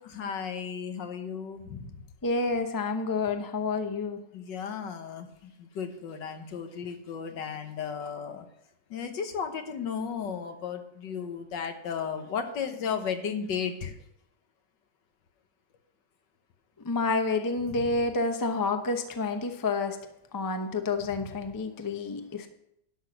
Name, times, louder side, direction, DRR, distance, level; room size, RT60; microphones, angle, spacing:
voice 1, 0.1-2.0 4.3-8.5 8.9-14.0 17.7-18.0 21.2-21.3 22.0-22.1, left 6 dB, 85° left, 7 dB, 1.8 m, -35 dB
voice 2, 2.2-4.2 16.8-20.0 20.3-22.5, left 3 dB, 20° left, 6 dB, 0.5 m, -29 dB
12.0 x 6.0 x 6.4 m, 0.77 s
omnidirectional pair, 1.9 m